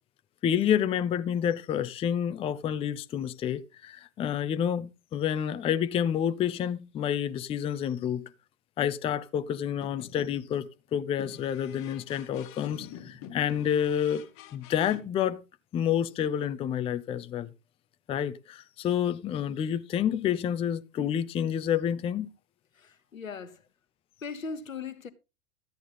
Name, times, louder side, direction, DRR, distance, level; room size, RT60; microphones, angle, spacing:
voice 1, 0.4-8.3 8.8-14.2 14.5-15.4 15.7-17.5 18.1-22.3, left 9 dB, 15° left, 0.5 m, -29 dB
sound 1, 9.7-10.6 11.2-15.0, left 9 dB, 35° left, 1.4 m, -46 dB
voice 2, 22.8-23.6 24.2-25.1, left 5 dB, 80° left, 1.2 m, -38 dB
13.5 x 9.2 x 3.8 m
figure-of-eight pair, 95°, 40 cm